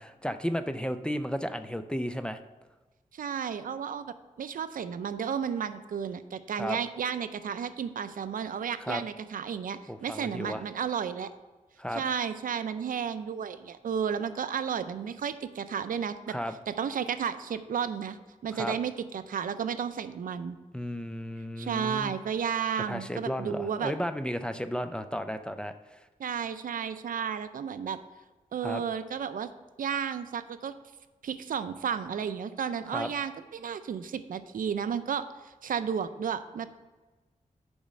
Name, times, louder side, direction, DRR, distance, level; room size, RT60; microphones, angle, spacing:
voice 1, 0.0-2.4 6.6-6.8 8.8-9.0 9.9-10.6 11.8-12.0 16.3-16.5 18.5-18.8 20.7-22.1 22.9-25.7 28.6-28.8 32.9-33.1, equal, 5° left, 9 dB, 0.4 m, -33 dB
voice 2, 3.1-11.3 11.9-16.4 16.7-18.2 18.4-20.6 21.6-23.9 26.2-28.0 28.5-29.5 29.8-30.8 31.2-36.7, right 7 dB, 85° right, 12 dB, 0.5 m, -33 dB
7.1 x 5.1 x 6.5 m, 1.2 s
wide cardioid pair, 140°, 14 cm